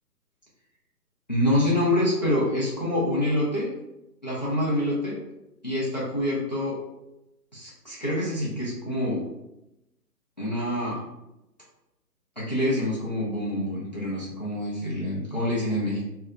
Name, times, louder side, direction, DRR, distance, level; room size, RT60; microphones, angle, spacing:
voice 1, 1.3-3.7 4.2-5.2 5.6-6.8 7.5-9.2 10.4-11.0 12.4-16.0, left 1 dB, 30° left, -7 dB, 0.4 m, -26 dB
2.8 x 2.2 x 2.4 m, 0.89 s
hypercardioid pair, 150°, 49 cm